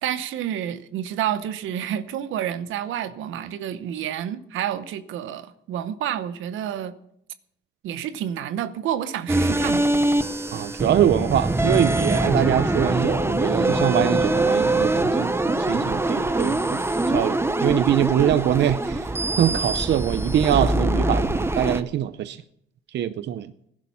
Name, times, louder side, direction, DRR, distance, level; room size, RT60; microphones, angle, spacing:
voice 1, 0.0-7.0 7.8-9.9 10.5-10.6, right 10 dB, 85° right, 0.9 m, -29 dB
sound 1, 9.3-21.8, right 2 dB, 10° right, 0.9 m, -23 dB
voice 2, 10.5-16.8 17.1-22.4 22.9-23.5, right 11 dB, 65° right, 0.6 m, -23 dB
16.0 x 11.0 x 5.7 m
cardioid pair, 90°, 20 cm